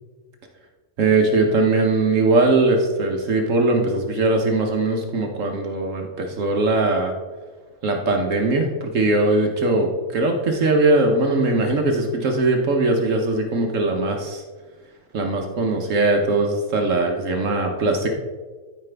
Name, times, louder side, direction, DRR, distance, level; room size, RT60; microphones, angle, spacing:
voice 1, 1.0-7.1 7.8-14.4 15.1-18.1, right 2 dB, 60° right, 2 dB, 1.2 m, -20 dB
13.0 x 4.9 x 3.3 m, 1.4 s
omnidirectional pair, 1.5 m